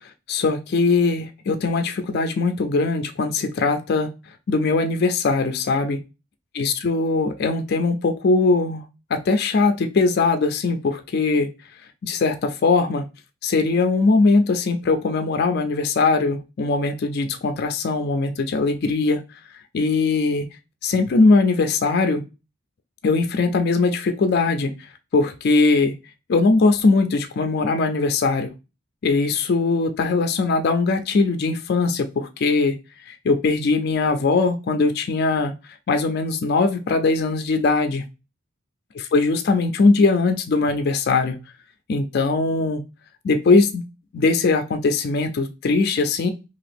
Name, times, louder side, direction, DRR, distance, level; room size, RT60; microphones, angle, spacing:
voice 1, 0.3-4.1 4.5-6.0 6.6-8.8 9.1-11.5 12.0-13.0 13.4-19.2 19.7-20.5 20.8-22.2 23.0-24.7 25.1-25.9 26.3-28.5 29.0-32.7 33.1-35.5 35.9-38.0 39.1-41.4 41.9-42.8 43.2-43.8 44.1-46.3, left 3 dB, 50° left, 6 dB, 0.4 m, -20 dB
2.9 x 2.4 x 3.3 m, 0.29 s
head